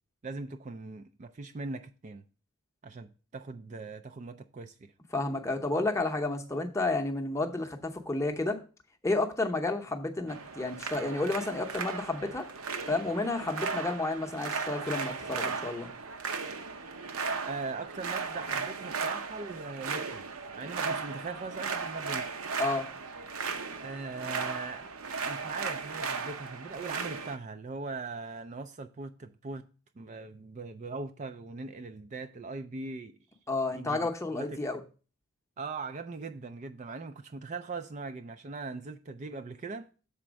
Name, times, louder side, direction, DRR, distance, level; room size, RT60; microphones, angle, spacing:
voice 1, 0.2-2.2 2.8-4.9 17.4-20.2 20.6-22.3 23.8-24.9 25.2-29.7 30.0-33.1 33.7-34.6 35.6-39.9, right 3 dB, 35° right, 0.4 m, -40 dB
voice 2, 5.1-8.6 9.0-12.5 12.9-15.9 22.6-22.9 33.5-34.8, left 2 dB, 15° left, 0.8 m, -31 dB
sound 1, 10.3-27.4, right 5 dB, 70° right, 0.8 m, -36 dB
6.9 x 4.3 x 6.2 m
head